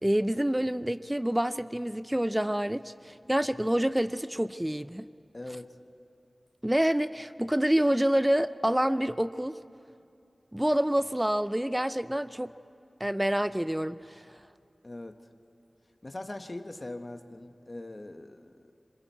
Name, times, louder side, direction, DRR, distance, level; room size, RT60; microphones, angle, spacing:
voice 1, 0.0-5.1 6.6-9.6 10.5-12.5 13.0-14.2, right 1 dB, 10° right, 14 dB, 0.5 m, -27 dB
voice 2, 5.3-5.7 14.8-15.2 16.0-18.7, left 2 dB, 40° left, 7 dB, 1.1 m, -41 dB
26.0 x 26.0 x 4.5 m, 2.5 s
wide cardioid pair, 50°, 0 cm